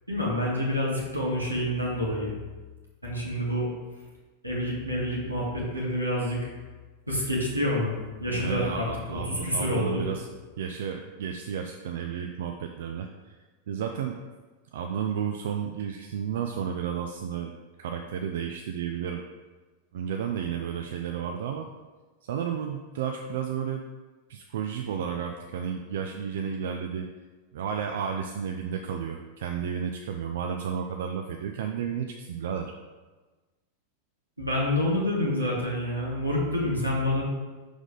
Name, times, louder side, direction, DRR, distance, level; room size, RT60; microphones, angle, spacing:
voice 1, 0.1-2.3 3.0-3.7 4.4-6.4 7.1-7.9 8.2-10.0 34.4-37.2, left 1 dB, 85° right, -4 dB, 1.8 m, -28 dB
voice 2, 8.3-10.3 10.6-13.4 13.7-14.2 14.7-19.2 19.9-21.7 22.3-23.8 24.3-27.1 27.5-32.7, right 7 dB, 60° right, 4 dB, 0.4 m, -32 dB
6.2 x 5.2 x 3.8 m, 1.3 s
figure-of-eight pair, 90°, 0 cm